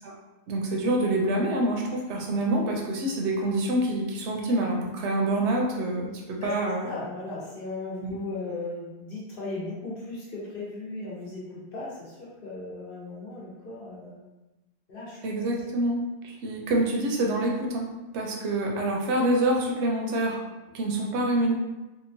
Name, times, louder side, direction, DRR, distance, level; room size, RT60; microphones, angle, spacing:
voice 1, 0.5-6.9 8.0-8.2 15.2-20.5 20.7-21.5, right 1 dB, 80° right, -1 dB, 0.9 m, -26 dB
voice 2, 6.9-14.2 14.9-15.4, left 2 dB, 55° left, -6 dB, 0.9 m, -37 dB
2.8 x 2.2 x 2.6 m, 1.1 s
omnidirectional pair, 1.1 m